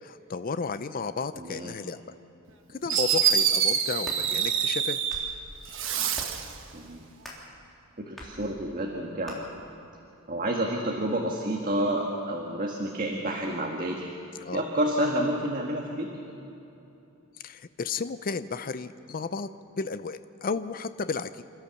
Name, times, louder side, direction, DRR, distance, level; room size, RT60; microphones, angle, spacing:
voice 1, 0.0-2.0 2.7-5.0 14.4-14.6 17.4-19.5 19.8-21.4, left 4 dB, 40° left, 12 dB, 0.5 m, -33 dB
voice 2, 1.3-1.8 6.7-7.0 8.0-9.4 10.3-14.1 14.5-16.1, right 1 dB, 40° right, 0 dB, 1.6 m, -29 dB
Fireworks, 2.5-2.6 2.9-5.3 5.7-6.5, right 8 dB, 65° right, 1.3 m, -26 dB
sound 1, 3.9-4.2 4.9-5.4 6.1-6.5 7.2-7.5 8.2-8.4 9.3-9.4, equal, ahead, 3.4 m, -42 dB
27.5 x 13.5 x 7.0 m, 2.9 s
head